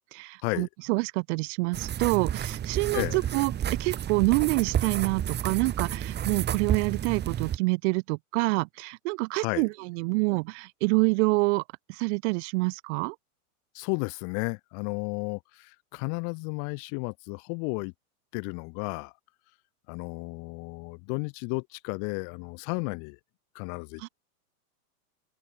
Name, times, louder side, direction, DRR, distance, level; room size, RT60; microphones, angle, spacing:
voice 1, 0.1-3.5 3.8-11.6 11.9-13.2 24.0-24.1, right 27 dB, 50° right, 5.2 m, -27 dB
sound 1, 1.7-7.6, right 10 dB, 20° right, 7.0 m, -31 dB
voice 2, 9.3-9.7 13.7-17.9 18.3-19.1 19.9-23.2 23.5-24.1, left 39 dB, 40° left, 2.7 m, -33 dB
supercardioid pair, 145°, 45 cm